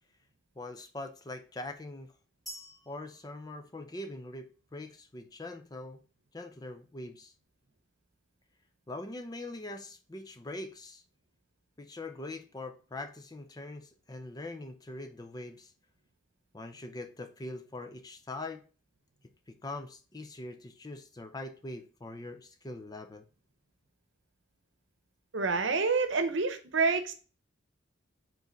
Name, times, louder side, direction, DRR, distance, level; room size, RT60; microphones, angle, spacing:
voice 1, 0.6-2.1 2.9-6.0 6.3-7.3 8.9-11.0 11.8-15.7 16.5-18.6 19.5-23.2, left 2 dB, 20° left, 8 dB, 0.5 m, -42 dB
sound 1, 2.5-4.4, right 1 dB, ahead, 1.4 m, -49 dB
voice 2, 25.3-27.1, right 4 dB, 75° right, 8 dB, 0.8 m, -28 dB
5.1 x 3.9 x 5.1 m, 0.37 s
head